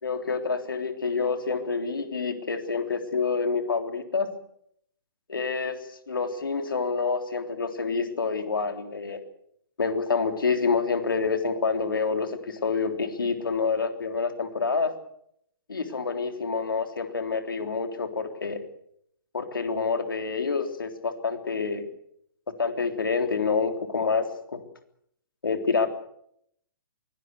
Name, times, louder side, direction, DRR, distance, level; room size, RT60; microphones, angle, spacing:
voice 1, 0.0-4.3 5.3-5.8 6.1-9.2 9.8-14.9 15.7-18.6 19.3-21.8 22.6-24.2 24.5-24.6 25.4-25.9, left 4 dB, 70° left, 7 dB, 3.6 m, -27 dB
23.0 x 18.0 x 8.3 m, 0.73 s
figure-of-eight pair, 125°, 12 cm